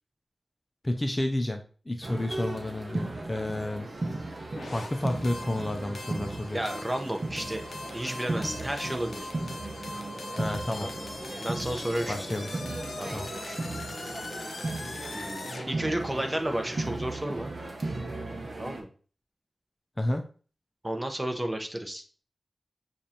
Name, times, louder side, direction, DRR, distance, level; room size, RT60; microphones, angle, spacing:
voice 1, 0.8-3.9 4.7-6.6 10.4-10.9 12.1-12.5 13.1-13.3 20.0-20.2, left 1 dB, 25° left, 5 dB, 0.5 m, -31 dB
sound 1, 2.0-18.8, right 2 dB, 50° right, 0.7 m, -36 dB
sound 2, 4.5-15.7, left 3 dB, 85° left, 0.6 m, -41 dB
voice 2, 6.5-9.2 10.8-11.0 11.4-12.3 13.0-13.2 13.4-13.6 15.1-17.5 18.6-18.9 20.8-22.0, right 1 dB, 20° right, 4 dB, 0.8 m, -32 dB
6.8 x 2.5 x 2.8 m, 0.40 s
wide cardioid pair, 65°, 0 cm